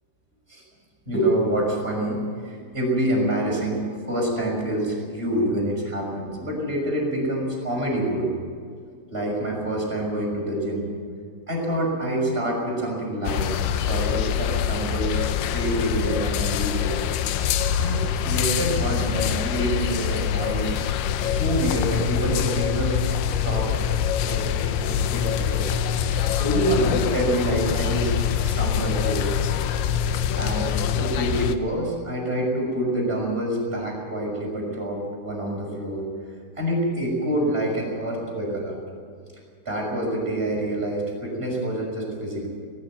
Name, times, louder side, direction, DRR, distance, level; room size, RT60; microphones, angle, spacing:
voice 1, 1.1-8.3 9.1-10.9 11.5-17.4 17.7-20.8 21.2-23.0 23.4-23.7 24.2-28.1 28.4-29.3 30.4-36.0 36.6-38.8 39.6-42.5, right 1 dB, 10° right, -2 dB, 5.9 m, -27 dB
sound 1, 13.2-31.6, left 9 dB, 75° left, 2.9 m, -24 dB
19.5 x 16.0 x 9.3 m, 2.1 s
omnidirectional pair, 6.0 m